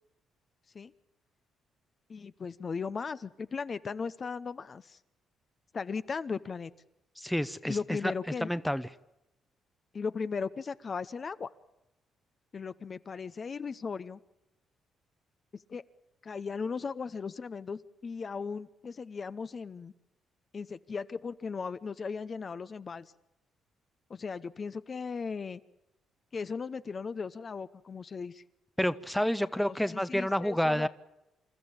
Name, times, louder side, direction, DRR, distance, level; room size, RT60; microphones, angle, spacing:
voice 1, 2.1-5.0 5.7-6.7 7.6-8.5 9.9-11.5 12.5-14.2 15.7-15.8 16.2-19.9 20.5-23.1 24.1-25.6 26.3-28.4 29.4-30.9, left 5 dB, 40° left, 13 dB, 0.8 m, -37 dB
voice 2, 7.2-7.8 8.0-8.1 8.4-8.8 28.8-30.9, equal, 5° left, 15 dB, 0.8 m, -29 dB
27.0 x 13.5 x 8.7 m, 0.92 s
cardioid pair, 90°, 0 cm